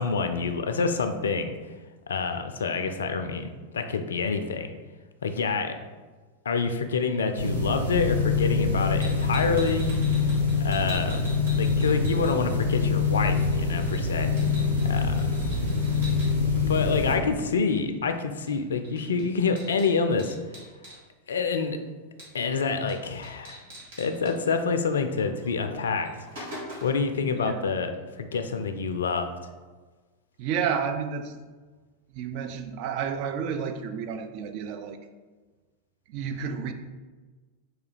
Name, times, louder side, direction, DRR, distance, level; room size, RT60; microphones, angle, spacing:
voice 1, 0.0-1.6 2.1-3.5 3.7-4.7 5.2-5.8 6.5-9.9 10.6-11.2 11.5-14.3 14.8-15.3 16.6-20.4 21.3-21.8 22.3-23.6 24.0-26.1 26.4-26.5 26.8-27.9 28.2-29.3, left 5 dB, 65° left, 7 dB, 0.3 m, -27 dB
sound 1, 7.3-17.2, left 4 dB, 80° right, 0.8 m, -25 dB
sound 2, 9.0-12.7 13.0-16.3 18.5-18.6 18.8-21.0 22.2-22.6 22.9-23.0 23.2-24.3 25.4-25.5 25.9-27.1, equal, 60° right, 1.5 m, -43 dB
voice 2, 27.3-27.7 30.4-31.4 32.1-35.0 36.1-36.7, right 7 dB, 45° right, 7 dB, 0.3 m, -31 dB
3.7 x 2.7 x 4.0 m, 1.4 s
figure-of-eight pair, 90°, 0 cm